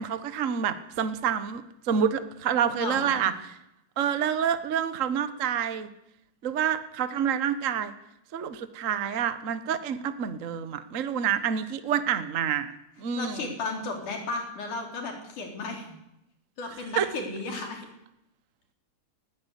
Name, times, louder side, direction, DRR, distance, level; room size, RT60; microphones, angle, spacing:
voice 1, 0.0-3.3 4.0-5.9 6.4-7.9 8.3-13.4 16.9-17.1, right 8 dB, 80° right, 11 dB, 0.7 m, -28 dB
voice 2, 2.7-3.2 13.2-16.0 16.6-17.9, left 3 dB, 85° left, 2 dB, 5.4 m, -34 dB
20.0 x 16.0 x 8.3 m, 0.84 s
omnidirectional pair, 3.5 m